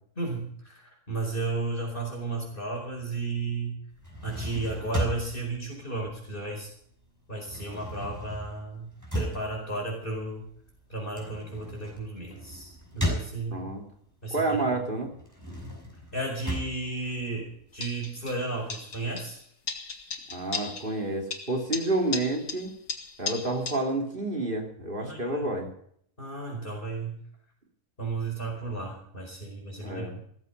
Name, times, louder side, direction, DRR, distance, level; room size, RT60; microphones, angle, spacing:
voice 1, 0.2-3.8 4.2-6.7 7.3-10.5 10.9-13.6 14.2-14.6 16.1-19.4 25.0-25.6 26.2-27.2 28.0-30.2, right 3 dB, 30° left, -1 dB, 5.0 m, -34 dB
sound 1, 3.9-6.8 7.0-13.9 14.3-17.9, equal, 10° right, 5.9 m, -36 dB
voice 2, 13.5-13.8 14.3-15.1 20.3-22.7 23.2-25.7 29.8-30.2, right 2 dB, 30° right, 2 dB, 3.3 m, -29 dB
sound 2, 17.8-18.4 18.7-19.4 19.7-21.0 21.3-23.8, left 5 dB, 80° left, 2.3 m, -36 dB
15.5 x 15.0 x 5.4 m, 0.65 s
omnidirectional pair, 1.7 m